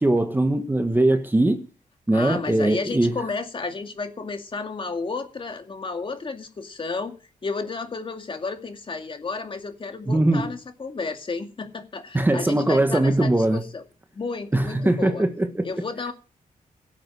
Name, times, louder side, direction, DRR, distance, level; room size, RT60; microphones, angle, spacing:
voice 1, 0.0-1.6 2.1-3.2 10.1-10.5 12.1-13.6 14.5-15.7, right 1 dB, 15° right, 1.4 m, -21 dB
voice 2, 2.1-7.1 7.4-13.8 14.1-15.2 15.6-16.1, left 4 dB, 40° left, 2.3 m, -32 dB
17.0 x 8.2 x 6.3 m
wide cardioid pair, 120°, 14 cm